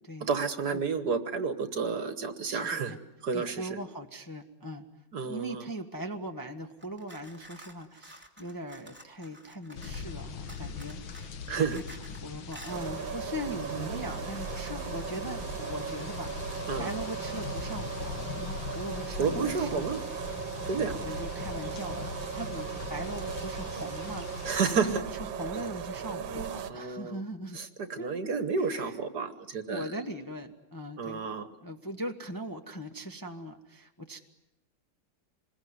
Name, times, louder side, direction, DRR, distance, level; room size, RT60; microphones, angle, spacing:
voice 1, 0.3-2.9 3.2-3.7 5.1-5.6 11.5-11.8 16.7-16.9 19.2-20.0 20.7-20.9 24.4-25.0 26.7-27.2 27.5-29.9 31.0-31.5, right 5 dB, 55° right, 10 dB, 1.8 m, -30 dB
voice 2, 2.5-3.0 3.3-4.9 5.2-11.8 12.2-19.9 20.6-20.7 21.0-25.0 25.3-27.6 27.9-29.0 29.7-31.3 31.6-34.2, right 1 dB, 10° left, 4 dB, 1.2 m, -40 dB
sound 1, 6.8-10.1 10.5-12.2 12.5-12.8, equal, 5° right, 2.6 m, -51 dB
sound 2, 9.7-25.0, left 5 dB, 70° left, 2.0 m, -41 dB
sound 3, 12.7-26.7, right 7 dB, 75° right, 1.9 m, -38 dB
26.5 x 21.0 x 9.5 m, 0.93 s
omnidirectional pair, 2.2 m